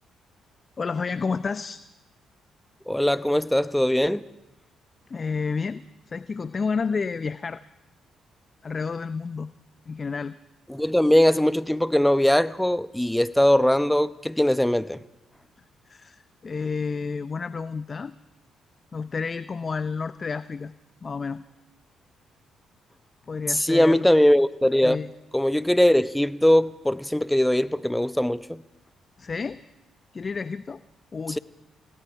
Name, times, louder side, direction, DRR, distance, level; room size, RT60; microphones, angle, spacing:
voice 1, 0.8-1.8 5.1-7.6 8.6-9.5 9.9-10.4 15.9-18.1 18.9-20.7 21.0-21.4 23.3-24.1 24.8-25.1 29.2-29.6 30.1-30.8 31.1-31.4, left 5 dB, 40° left, 14 dB, 0.6 m, -30 dB
voice 2, 2.9-4.2 10.7-15.0 23.5-25.0 25.3-28.6, left 1 dB, 5° left, 15 dB, 0.8 m, -21 dB
29.0 x 17.5 x 5.7 m, 0.98 s
supercardioid pair, 55°, 0 cm